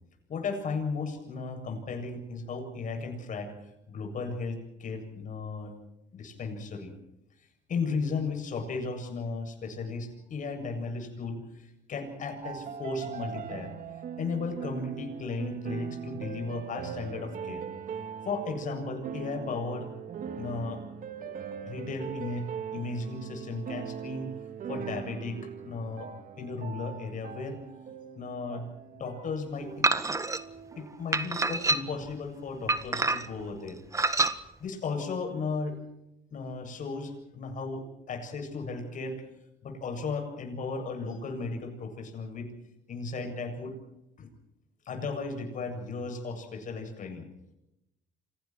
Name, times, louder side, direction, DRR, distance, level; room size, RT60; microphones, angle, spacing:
voice 1, 0.3-3.5 3.9-5.7 6.1-6.9 7.7-13.7 14.2-17.6 18.2-19.9 20.4-20.8 21.6-24.3 24.7-26.1 26.4-27.6 28.2-29.9 30.7-33.8 34.6-35.8 36.3-39.2 39.6-42.5 42.9-43.8 44.2-44.3 44.9-47.3, left 4 dB, 50° left, 5 dB, 7.8 m, -35 dB
sound 1, 12.4-31.6, right 7 dB, 55° right, 2.6 m, -41 dB
sound 2, 29.8-30.4 31.1-32.1 32.7-33.4 33.9-34.4, right 3 dB, 20° right, 1.7 m, -26 dB
29.5 x 25.5 x 4.6 m, 0.86 s
cardioid pair, 110°, 17 cm